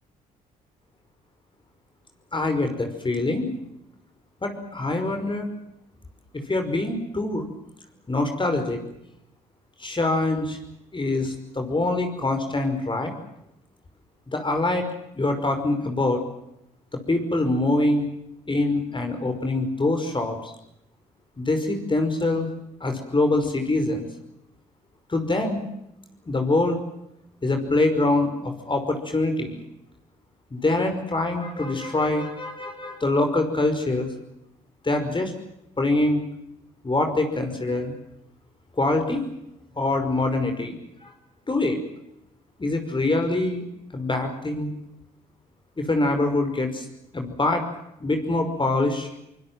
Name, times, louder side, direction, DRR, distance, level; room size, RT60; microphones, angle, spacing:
voice 1, 2.3-3.5 4.4-5.5 6.3-7.5 8.1-8.8 9.8-10.6 10.9-13.1 14.3-14.9 15.2-16.2 16.9-18.1 18.5-20.5 21.4-22.5 22.8-24.1 25.1-25.6 26.3-26.8 27.4-29.6 30.5-34.1 34.8-35.3 35.8-36.2 36.8-37.9 38.8-39.3 39.8-41.1 41.5-41.8 42.6-43.7 43.9-44.7 45.8-46.9 47.1-47.6 48.0-49.1, left 2 dB, 25° left, 5 dB, 5.4 m, -24 dB
24.5 x 22.0 x 7.6 m, 0.82 s
hypercardioid pair, 55°, 19 cm